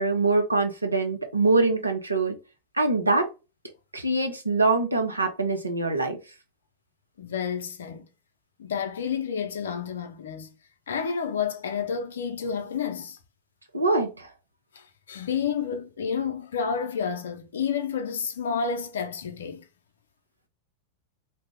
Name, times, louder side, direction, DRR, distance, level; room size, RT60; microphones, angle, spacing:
voice 1, 0.0-2.4 2.7-3.3 3.9-6.2 13.7-14.3, right 3 dB, 80° right, 0.6 m, -24 dB
voice 2, 7.2-8.0 8.6-10.5 10.9-13.2 14.7-19.6, left 6 dB, 65° left, 0.5 m, -30 dB
2.7 x 2.1 x 3.2 m
figure-of-eight pair, 90°, 0 cm